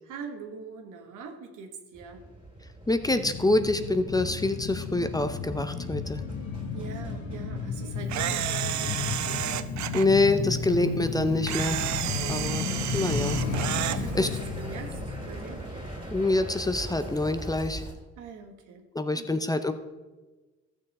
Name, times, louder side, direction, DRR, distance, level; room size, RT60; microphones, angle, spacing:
voice 1, 0.1-2.3 6.7-9.4 12.1-13.0 13.9-15.6 18.2-18.9 19.1-19.4, right 5 dB, 85° right, 4 dB, 1.4 m, -43 dB
sound 1, 1.9-17.9, right 1 dB, 20° right, 3.0 m, -42 dB
voice 2, 2.9-6.2 9.9-11.8 12.3-13.4 13.8-13.9 14.1-14.3 16.1-17.8 18.9-19.7, left 2 dB, 10° left, 9 dB, 0.6 m, -26 dB
sound 2, 3.0-16.2 16.5-16.6, left 5 dB, 60° left, 1.1 m, -33 dB
Camera, 8.1-10.1 11.5-14.0, right 12 dB, 70° right, 0.5 m, -31 dB
13.5 x 6.6 x 4.2 m, 1.2 s
cardioid pair, 90°, 30 cm